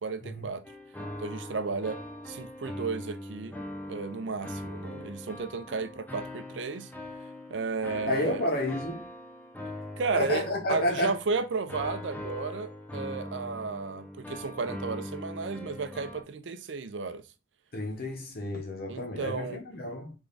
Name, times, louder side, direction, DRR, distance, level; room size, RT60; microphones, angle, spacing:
voice 1, 0.0-0.6 1.2-2.0 2.3-3.5 3.9-6.9 7.5-8.4 10.0-17.2 18.9-19.6, right 4 dB, 80° right, 0.5 m, -33 dB
sound 1, 0.6-16.2, left 1 dB, 10° left, 0.7 m, -41 dB
voice 2, 8.1-9.0 10.1-11.1 17.7-20.1, left 1 dB, 55° left, 0.9 m, -31 dB
3.5 x 3.4 x 3.9 m
head